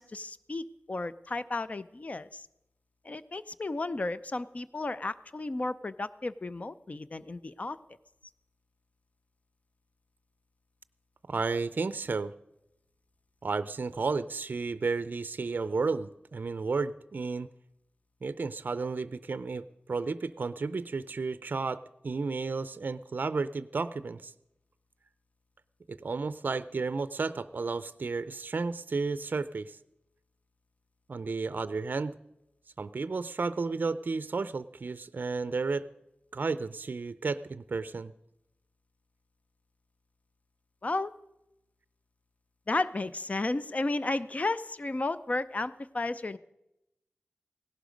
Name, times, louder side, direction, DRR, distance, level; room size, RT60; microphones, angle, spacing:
voice 1, 0.0-2.5 3.0-7.8 40.8-41.1 42.7-46.4, left 2 dB, 40° left, 14 dB, 0.6 m, -33 dB
voice 2, 11.3-12.3 13.4-17.5 18.2-24.3 25.9-29.8 31.1-32.1 32.8-35.8 36.3-38.1, right 4 dB, 60° right, 15 dB, 0.4 m, -32 dB
17.0 x 11.5 x 5.1 m, 0.87 s
wide cardioid pair, 65°, 4 cm